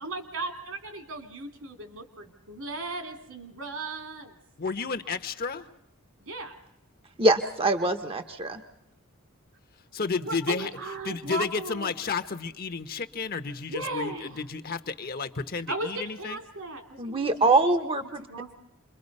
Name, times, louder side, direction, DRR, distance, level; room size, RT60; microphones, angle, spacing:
voice 1, 0.0-4.3 6.2-6.5 10.2-11.9 13.7-14.4 15.7-17.3 18.3-18.6, right 2 dB, 75° right, 6 dB, 2.8 m, -36 dB
voice 2, 4.6-5.7 9.9-10.7 11.0-16.4, left 5 dB, 45° left, 8 dB, 1.0 m, -32 dB
voice 3, 7.2-8.6 17.0-18.2, right 2 dB, 25° right, 9 dB, 0.8 m, -23 dB
28.0 x 22.5 x 5.4 m, 0.82 s
head